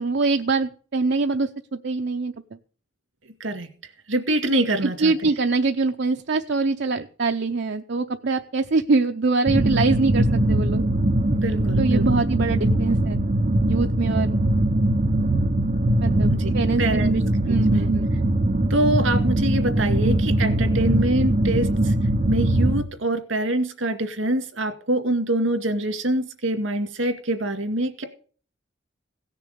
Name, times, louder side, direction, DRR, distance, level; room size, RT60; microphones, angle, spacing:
voice 1, 0.0-2.3 4.8-10.8 11.8-13.2 13.7-14.3 16.0-16.3 16.5-17.2 17.5-18.1, right 3 dB, 65° right, 6 dB, 0.6 m, -24 dB
voice 2, 4.1-5.1 11.4-12.2 16.3-16.5 16.8-17.2 17.7-17.8 18.7-21.9 22.3-28.0, right 1 dB, 80° right, 8 dB, 2.1 m, -25 dB
sound 1, 9.5-22.8, right 1 dB, 40° right, 0.9 m, -21 dB
17.0 x 6.8 x 6.8 m, 0.43 s
head